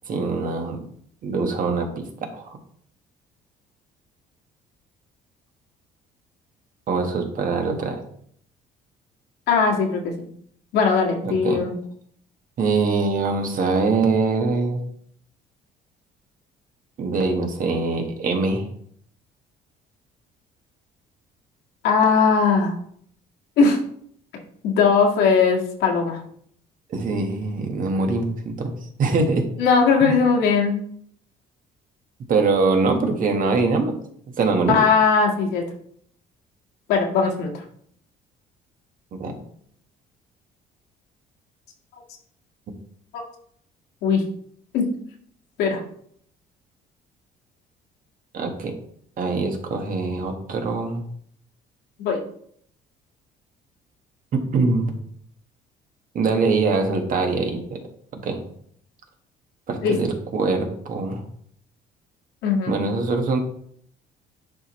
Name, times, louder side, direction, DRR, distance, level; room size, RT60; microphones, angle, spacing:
voice 1, 0.1-0.8 1.2-2.0 2.3-2.6 6.9-8.0 11.2-11.6 12.6-14.8 17.0-18.7 26.9-29.4 30.0-30.1 32.3-33.9 34.4-34.8 39.1-39.3 48.3-48.8 49.2-51.0 54.3-55.0 56.1-57.8 58.2-58.4 59.7-61.2 62.7-63.4, right 3 dB, 55° right, 4 dB, 1.5 m, -23 dB
voice 2, 9.5-10.1 10.7-11.7 21.8-22.7 23.6-23.8 24.6-26.2 29.6-30.8 34.7-35.6 36.9-37.6 43.1-43.2 44.0-44.2 44.7-44.9 45.6-45.8 52.0-52.2 59.8-59.9 62.4-62.7, left 5 dB, 85° left, 0 dB, 1.9 m, -19 dB
10.5 x 4.5 x 3.1 m, 0.64 s
cardioid pair, 110°, 17 cm